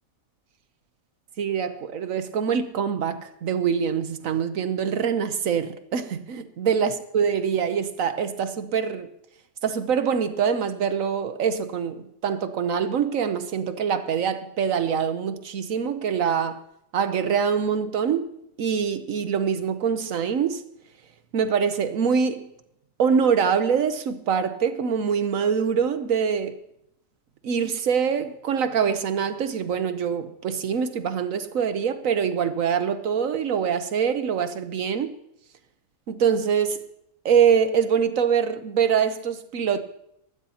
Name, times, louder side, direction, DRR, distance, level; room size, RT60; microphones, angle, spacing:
voice 1, 1.4-9.1 9.6-16.6 16.9-18.3 18.6-20.6 21.3-22.5 23.0-26.5 27.4-35.1 36.1-36.8 37.2-39.8, right 7 dB, 75° right, 1.2 m, -24 dB
24.5 x 12.0 x 2.9 m
omnidirectional pair, 1.4 m